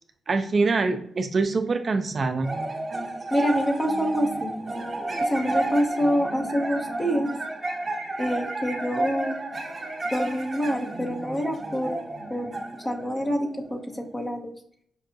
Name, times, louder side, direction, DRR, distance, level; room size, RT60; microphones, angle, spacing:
voice 1, 0.3-2.5, right 3 dB, 45° right, 7 dB, 0.3 m, -24 dB
sound 1, 2.4-14.0, right 2 dB, 25° right, 1.2 m, -31 dB
voice 2, 3.3-4.5 5.2-7.3 8.2-9.4 10.0-12.0 12.3-12.5 12.8-14.5, equal, 20° left, 3 dB, 0.7 m, -26 dB
5.3 x 2.5 x 2.5 m, 0.67 s
cardioid pair, 95°, 0 cm